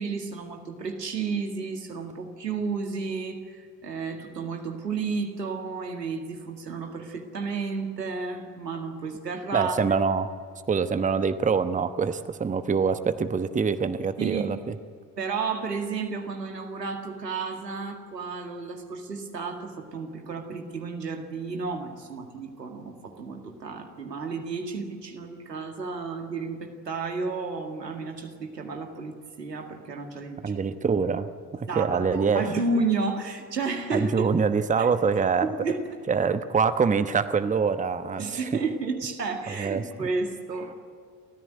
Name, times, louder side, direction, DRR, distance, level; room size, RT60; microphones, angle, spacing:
voice 1, 0.0-9.8 14.2-14.5 15.2-30.5 31.7-34.3 34.8-34.9 35.4-35.9 38.2-40.7, right 4 dB, 80° right, 4 dB, 2.1 m, -32 dB
voice 2, 9.5-10.3 10.7-14.7 30.4-32.4 33.9-35.5 36.1-38.5 39.5-39.9, right 5 dB, 15° right, 11 dB, 1.0 m, -25 dB
29.5 x 14.5 x 9.2 m, 2.2 s
figure-of-eight pair, 60°, 48 cm